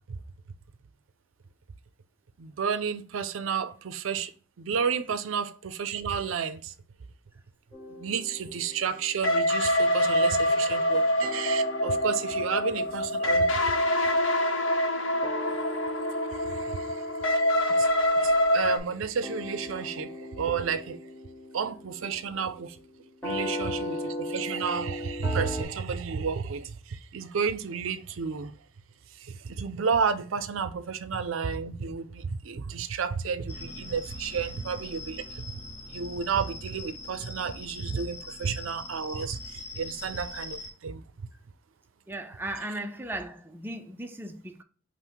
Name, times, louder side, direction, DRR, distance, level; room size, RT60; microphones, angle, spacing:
voice 1, 2.4-4.3 4.6-6.7 8.0-13.5 16.3-17.0 17.3-17.4 17.7-17.9 18.2-21.0 21.5-22.8 23.2-28.5 29.2-35.2 35.9-41.0, right 6 dB, 85° right, 0.5 m, -31 dB
sound 1, 7.7-11.0 11.2-25.6, left 1 dB, 10° left, 1.5 m, -39 dB
sound 2, 9.2-18.8, left 1 dB, 70° left, 0.8 m, -25 dB
sound 3, 33.5-40.7, left 2 dB, 35° left, 0.8 m, -42 dB
voice 2, 42.1-44.6, right 1 dB, 10° right, 0.4 m, -37 dB
5.6 x 2.1 x 4.5 m
head